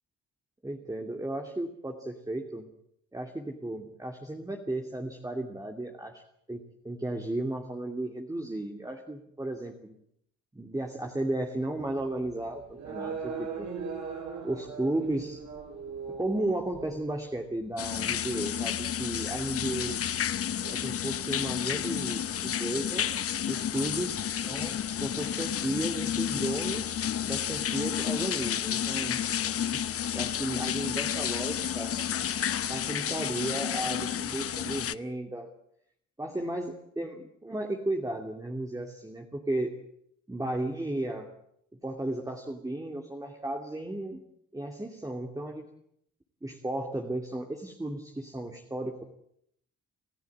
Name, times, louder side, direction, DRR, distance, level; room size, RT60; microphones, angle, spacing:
voice 1, 0.6-2.7 3.1-6.2 6.5-9.9 10.5-13.7 14.4-15.4 16.2-20.0 20.7-23.1 23.4-29.2 30.1-32.0 32.7-35.5 36.2-39.7 40.3-41.3 41.7-44.2 44.5-45.7 46.4-49.0, right 1 dB, 10° right, 2 dB, 2.7 m, -34 dB
sound 1, 11.8-21.2, right 5 dB, 70° right, 6.2 m, -40 dB
sound 2, 17.8-34.9, left 9 dB, 50° left, 0.9 m, -31 dB
28.5 x 14.0 x 8.7 m, 0.73 s
cardioid pair, 90°, 30 cm